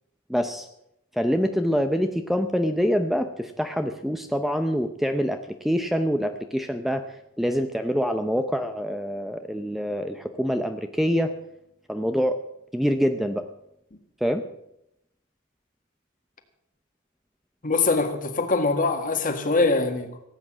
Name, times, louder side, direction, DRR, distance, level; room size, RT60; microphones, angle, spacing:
voice 1, 0.3-0.7 1.1-11.3 11.9-12.4 12.7-13.5 14.2-14.4, equal, ahead, 7 dB, 0.6 m, -25 dB
voice 2, 17.6-20.2, left 3 dB, 40° left, 7 dB, 1.7 m, -23 dB
17.5 x 8.6 x 7.4 m, 0.82 s
head